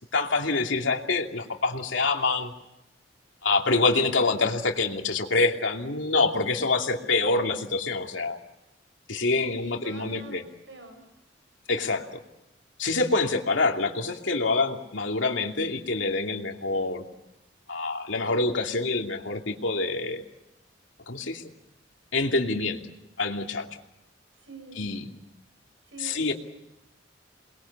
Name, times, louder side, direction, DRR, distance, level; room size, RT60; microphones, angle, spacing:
voice 1, 0.1-2.5 3.4-8.4 9.1-10.4 11.7-12.0 12.8-17.0 17.7-20.2 21.1-21.4 22.1-22.8 23.2-23.7 24.8-25.1 26.0-26.3, left 3 dB, 85° left, 2 dB, 2.7 m, -26 dB
voice 2, 9.5-10.4 10.7-11.0 24.3-24.8 25.8-26.3, right 3 dB, 80° right, 5 dB, 7.2 m, -45 dB
28.5 x 21.5 x 7.1 m, 0.87 s
head